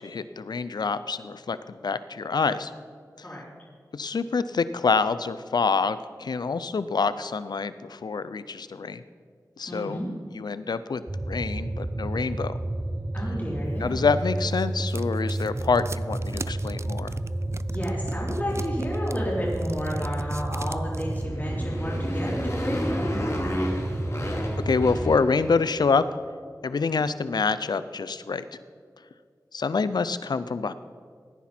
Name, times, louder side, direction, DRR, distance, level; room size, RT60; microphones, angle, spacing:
voice 1, 0.0-2.7 3.2-3.3 3.9-9.0 9.6-10.0 10.3-12.5 13.8-17.2 24.7-26.0 26.6-28.4 29.5-30.7, left 4 dB, 90° left, 14 dB, 0.5 m, -26 dB
voice 2, 9.7-10.1 13.1-14.0 17.7-23.4, equal, 25° left, -6 dB, 3.8 m, -31 dB
sound 1, 11.1-25.2, right 1 dB, 25° right, 0.8 m, -31 dB
sound 2, 14.0-21.3, right 3 dB, 40° right, 0.4 m, -41 dB
Motorcycle, 21.2-25.8, left 1 dB, 45° left, 2.2 m, -32 dB
17.0 x 10.0 x 4.4 m, 2.1 s
wide cardioid pair, 60°, 7 cm